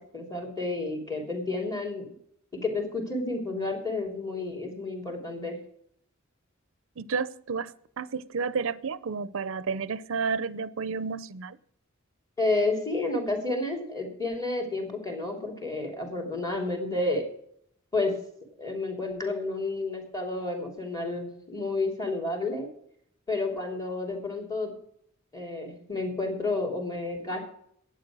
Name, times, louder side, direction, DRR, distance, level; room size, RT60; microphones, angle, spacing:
voice 1, 0.1-2.1 2.5-5.6 12.4-17.3 17.9-18.2 18.6-22.7 23.3-24.7 25.3-27.5, left 2 dB, 20° left, 3.2 m, -30 dB
voice 2, 7.0-11.6, right 5 dB, 70° right, 0.6 m, -31 dB
11.5 x 9.2 x 6.2 m
head